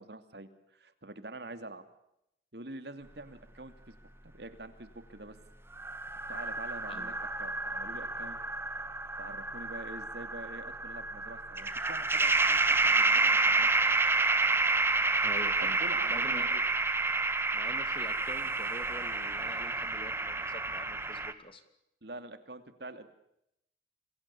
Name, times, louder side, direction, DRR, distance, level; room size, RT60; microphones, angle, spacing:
voice 1, 0.0-1.8 2.5-3.9 4.2-5.4 6.3-7.1 7.4-8.4 9.2-13.9 15.6-16.6 22.0-23.1, right 2 dB, 65° right, 10 dB, 2.7 m, -46 dB
sound 1, 5.8-21.3, right 3 dB, 15° right, 1.6 m, -29 dB
voice 2, 15.2-15.8 16.1-16.6 17.5-21.6, left 1 dB, 30° left, 10 dB, 2.7 m, -46 dB
28.0 x 23.5 x 7.1 m, 0.81 s
head